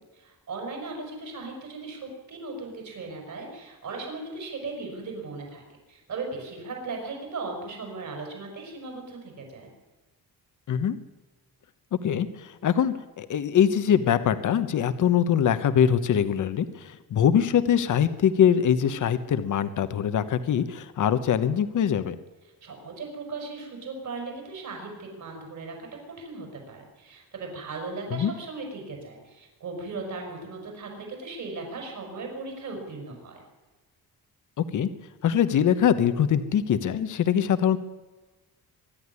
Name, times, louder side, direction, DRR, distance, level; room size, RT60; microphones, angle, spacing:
voice 1, 0.2-5.6 5.9-9.7 22.6-25.9 26.2-33.4, right 3 dB, 55° right, 2 dB, 6.1 m, -37 dB
voice 2, 10.7-11.0 11.9-22.2 28.1-28.3 34.6-34.9 35.2-37.8, left 8 dB, 55° left, 11 dB, 1.1 m, -23 dB
24.0 x 11.5 x 9.8 m, 1.2 s
wide cardioid pair, 155°, 35 cm